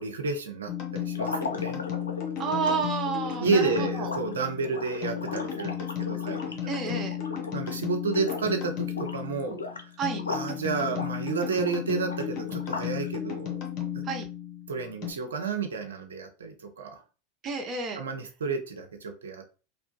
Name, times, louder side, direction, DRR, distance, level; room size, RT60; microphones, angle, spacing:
voice 1, 0.0-1.8 3.4-7.0 7.5-9.9 10.3-13.6 13.9-14.0 14.7-17.0 18.0-19.5, right 4 dB, 75° right, 5 dB, 0.6 m, -31 dB
sound 1, 0.7-15.1, left 10 dB, 45° left, 0.8 m, -34 dB
sound 2, 1.1-7.8 8.1-8.6 8.9-10.5 10.9-13.1, left 3 dB, 80° left, 0.4 m, -37 dB
voice 2, 2.4-4.1 6.7-7.2 10.0-10.2 14.0-14.3 17.4-18.0, right 5 dB, 35° right, 4 dB, 0.6 m, -30 dB
2.8 x 2.1 x 2.7 m, 0.34 s
figure-of-eight pair, 85°, 0 cm